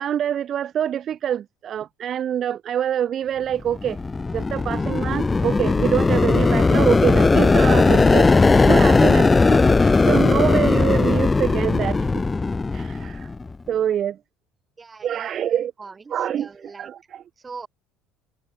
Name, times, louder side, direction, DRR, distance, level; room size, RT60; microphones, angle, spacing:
voice 1, 0.0-4.0 4.3-8.3 8.6-12.2 12.7-13.3 13.7-14.2 15.0-15.7 16.1-16.5 16.8-17.2, right 9 dB, 40° right, 0.7 m, -25 dB
sound 1, 3.7-13.5, left 3 dB, 15° left, 0.4 m, -18 dB
voice 2, 14.8-15.3 15.8-16.9 17.4-17.7, right 4 dB, 20° right, 3.9 m, -41 dB
cardioid pair, 130°, 0 cm